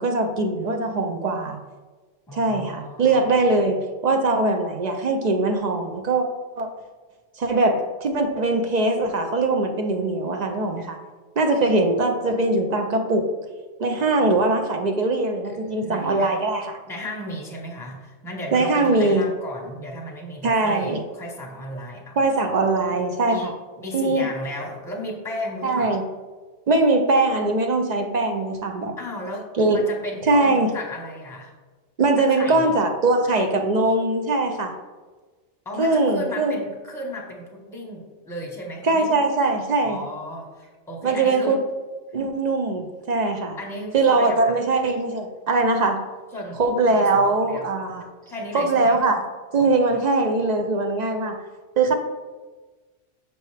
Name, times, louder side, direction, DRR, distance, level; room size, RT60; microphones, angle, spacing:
voice 1, 0.0-1.6 2.3-6.3 6.6-6.7 7.4-11.0 11.4-13.3 13.8-16.8 18.5-19.3 20.4-21.0 22.2-23.5 23.9-24.3 25.6-26.0 26.7-28.9 29.6-29.8 30.3-30.7 32.0-34.7 35.8-36.6 38.8-40.0 41.0-41.6 42.1-43.6 43.9-46.1 46.6-48.1 48.5-49.2 49.5-51.4 51.8-51.9, right 2 dB, 55° right, 4 dB, 0.4 m, -21 dB
voice 2, 2.3-3.2 15.4-16.4 16.9-22.2 23.2-23.5 23.8-26.0 29.0-31.5 32.2-32.8 35.6-39.2 39.8-41.6 43.6-44.6 46.3-46.6 46.9-47.7 48.3-49.0 49.6-50.0, left 1 dB, 5° left, -1 dB, 0.8 m, -35 dB
6.4 x 4.5 x 3.2 m, 1.3 s
omnidirectional pair, 1.2 m